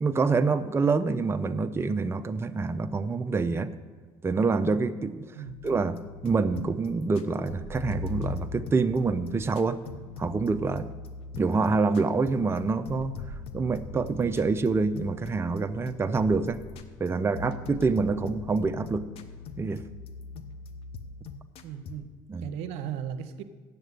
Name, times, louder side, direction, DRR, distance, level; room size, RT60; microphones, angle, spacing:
voice 1, 0.0-3.7 4.2-5.3 5.6-9.8 10.2-10.9 11.4-13.1 13.5-16.6 17.0-19.1 19.6-19.8 22.3-22.4, right 4 dB, 25° right, 9 dB, 0.5 m, -26 dB
sound 1, 5.5-22.0, left 4 dB, 65° left, 0.8 m, -41 dB
voice 2, 21.6-22.1 22.4-23.4, right 8 dB, 80° right, 9 dB, 0.7 m, -36 dB
7.9 x 7.6 x 8.2 m, 1.4 s
supercardioid pair, 80°, 11 cm